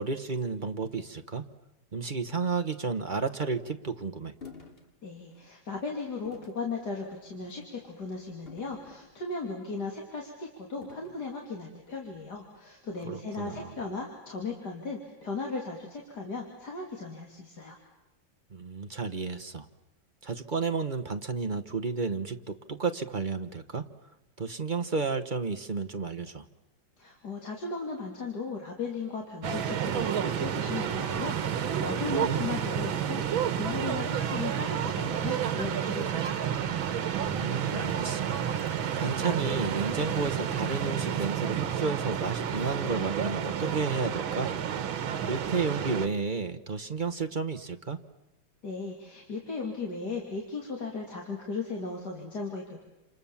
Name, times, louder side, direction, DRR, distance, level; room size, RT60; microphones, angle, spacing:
voice 1, 0.0-1.4 1.9-4.3 13.0-13.8 18.5-19.7 20.2-23.9 24.4-26.5 32.2-32.4 37.1-38.3 39.0-44.5 45.3-48.0, right 4 dB, 35° right, 6 dB, 0.9 m, -32 dB
sound 1, 4.4-4.8 5.3-5.5 6.3-6.6 7.4-7.7 8.5-9.4 10.8-11.3, left 6 dB, 30° left, 2.6 m, -49 dB
voice 2, 5.0-17.8 27.0-36.5 48.6-52.8, left 4 dB, 55° left, 0 dB, 3.5 m, -37 dB
sound 2, 29.4-46.1, right 8 dB, 90° right, 2.0 m, -30 dB
29.0 x 28.0 x 7.2 m, 0.97 s
omnidirectional pair, 2.1 m